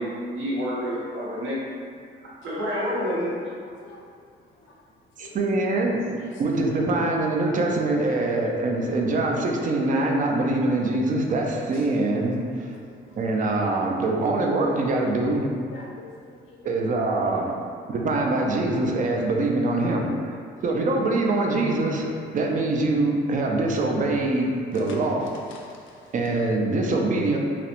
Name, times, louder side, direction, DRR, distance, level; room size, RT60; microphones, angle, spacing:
voice 1, 0.0-1.6 2.2-3.3, equal, 80° right, -6 dB, 0.7 m, -28 dB
voice 2, 5.2-6.0 6.4-12.8 13.2-15.5 16.6-17.5 17.9-20.4 20.6-25.3 26.1-27.4, right 2 dB, 40° right, 0 dB, 0.4 m, -24 dB
voice 3, 15.7-16.7 24.9-25.0 25.5-26.1, left 3 dB, 75° left, -1 dB, 0.5 m, -47 dB
2.3 x 2.0 x 2.8 m, 2.2 s
cardioid pair, 90°, 20 cm